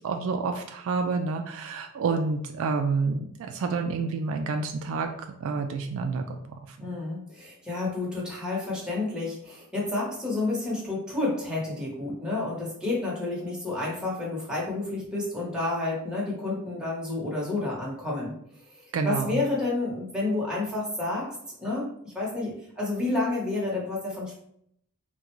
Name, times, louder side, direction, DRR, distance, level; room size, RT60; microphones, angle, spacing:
voice 1, 0.0-5.1 5.4-6.9 18.9-19.4, right 4 dB, 65° right, 5 dB, 0.3 m, -29 dB
voice 2, 6.8-18.3 19.0-21.2 21.6-24.4, left 2 dB, 5° right, -6 dB, 1.0 m, -30 dB
3.6 x 2.2 x 3.0 m, 0.71 s
head